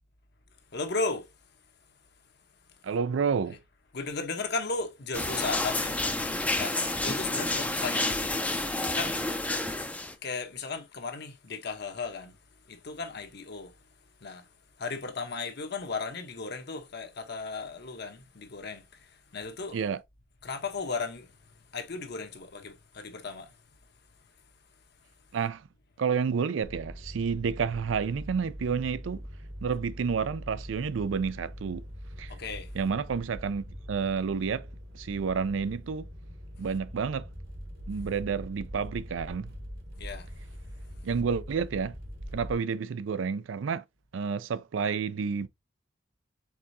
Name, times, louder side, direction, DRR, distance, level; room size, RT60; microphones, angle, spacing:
voice 1, 0.7-1.3 3.9-6.0 6.6-8.3 8.9-9.2 10.2-12.4 12.7-13.7 14.2-14.5 14.8-19.8 20.4-21.3 21.7-23.5 32.3-32.7 40.0-40.3, left 4 dB, 60° left, 0.9 m, -35 dB
voice 2, 2.8-3.6 19.7-20.0 25.3-25.7 26.0-29.2 29.6-31.8 32.2-32.3 32.7-34.7 34.9-36.1 36.6-37.3 37.9-39.5 41.0-41.9 42.3-43.8 44.1-45.5, right 6 dB, 85° right, 0.4 m, -30 dB
sound 1, 5.1-10.1, left 2 dB, 10° left, 0.4 m, -29 dB
sound 2, 26.6-42.5, equal, 60° right, 1.1 m, -43 dB
4.8 x 3.6 x 2.7 m
head